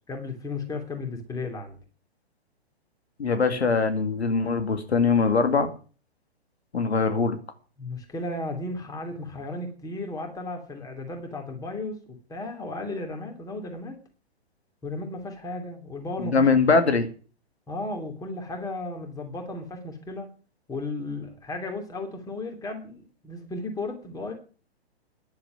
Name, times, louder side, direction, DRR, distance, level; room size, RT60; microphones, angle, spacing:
voice 1, 0.1-1.8 7.8-12.0 12.3-14.0 14.8-16.5 17.7-20.3 20.7-24.3, left 2 dB, 10° left, 4 dB, 3.0 m, -34 dB
voice 2, 3.2-5.7 6.7-7.4 16.2-17.1, left 4 dB, 80° left, 8 dB, 2.3 m, -22 dB
10.5 x 7.7 x 9.3 m, 0.37 s
hypercardioid pair, 125°, 32 cm